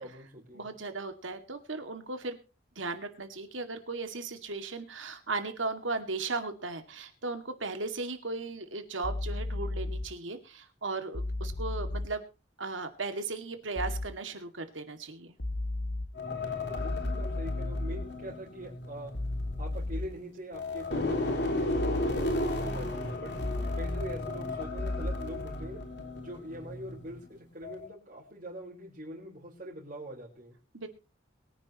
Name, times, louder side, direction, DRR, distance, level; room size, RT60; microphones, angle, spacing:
voice 1, 0.0-0.7 16.4-19.1 19.6-23.3 23.7-25.8 26.2-30.5, equal, 40° right, -5 dB, 4.4 m, -43 dB
voice 2, 0.5-2.4 2.8-12.2 12.6-15.4 30.7-30.9, right 3 dB, 80° right, 7 dB, 2.2 m, -36 dB
sound 1, 9.0-10.0 11.1-12.1 13.8-14.1 15.4-16.1 16.8-18.0 19.1-20.1 21.8-22.1 23.4-24.1 24.8-25.1, left 2 dB, 75° left, 1.9 m, -33 dB
sound 2, 16.1-20.2 20.5-27.2 27.6-27.9, left 2 dB, 60° left, 3.9 m, -34 dB
23.0 x 10.0 x 3.0 m, 0.33 s
head